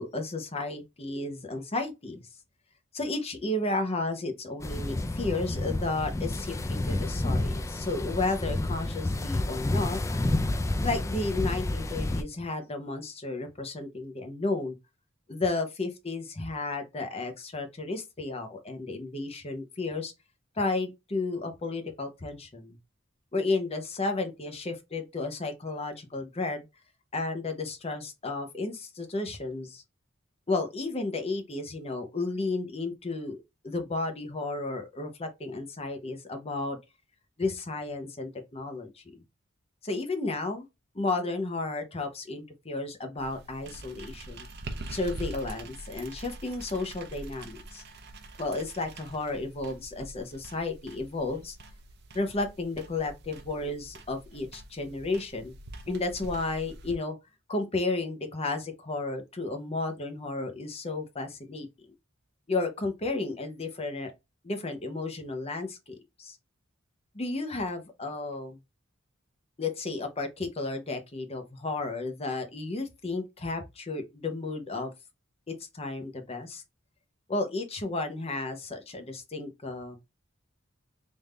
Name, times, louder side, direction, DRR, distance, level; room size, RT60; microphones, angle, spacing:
voice 1, 0.0-2.2 2.9-10.0 10.8-14.7 15.3-20.1 20.6-22.8 23.3-26.7 27.1-29.8 30.5-33.4 33.6-36.8 37.4-39.2 39.8-40.6 40.9-44.5 44.9-47.8 48.4-51.6 52.1-55.5 55.9-57.2 57.5-61.7 62.5-64.1 64.4-66.4 67.1-68.6 69.6-74.9 75.5-76.6 77.3-80.0, left 3 dB, 30° left, 0.8 m, -33 dB
sound 1, 4.6-12.2, left 2 dB, 15° left, 0.3 m, -30 dB
sound 2, 43.2-56.9, right 2 dB, 55° right, 0.7 m, -44 dB
3.6 x 2.6 x 3.2 m
head